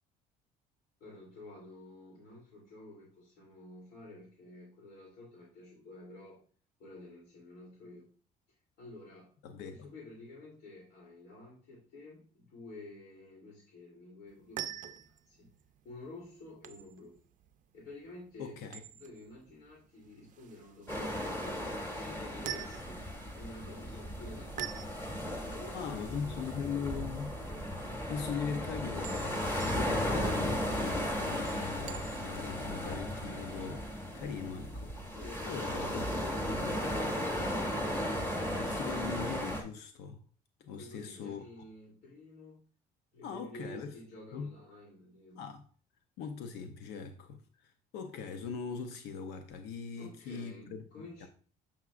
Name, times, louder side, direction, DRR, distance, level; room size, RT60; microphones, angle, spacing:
voice 1, 1.0-6.4 6.8-8.1 8.8-9.3 9.7-15.5 15.8-17.2 17.7-18.6 18.9-21.3 22.0-23.0 23.3-24.9 25.2-26.8 35.1-37.1 40.8-42.6 43.1-45.4 50.0-51.3, left 2 dB, 70° left, 3.0 m, -50 dB
voice 2, 9.4-9.9 18.4-18.8 25.7-27.4 27.8-34.9 35.4-36.0 36.5-36.7 38.5-40.2 40.6-41.4 43.2-44.0 44.3-44.5 45.3-45.6 46.2-51.3, left 6 dB, 85° left, 0.7 m, -40 dB
sound 1, 14.3-32.5, right 10 dB, 50° right, 0.5 m, -48 dB
sound 2, 20.9-39.6, equal, 15° left, 1.5 m, -35 dB
7.2 x 5.8 x 2.4 m
cardioid pair, 110°, 17 cm